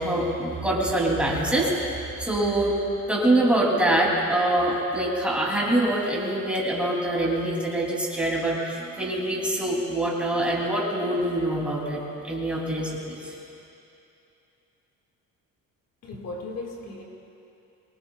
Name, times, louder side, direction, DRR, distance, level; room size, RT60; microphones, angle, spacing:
voice 1, 0.0-2.7 3.1-13.3, right 1 dB, 5° right, -4 dB, 2.9 m, -25 dB
voice 2, 16.0-17.0, left 2 dB, 50° left, -1 dB, 2.0 m, -36 dB
24.0 x 21.0 x 2.4 m, 2.7 s
cardioid pair, 145°, 32 cm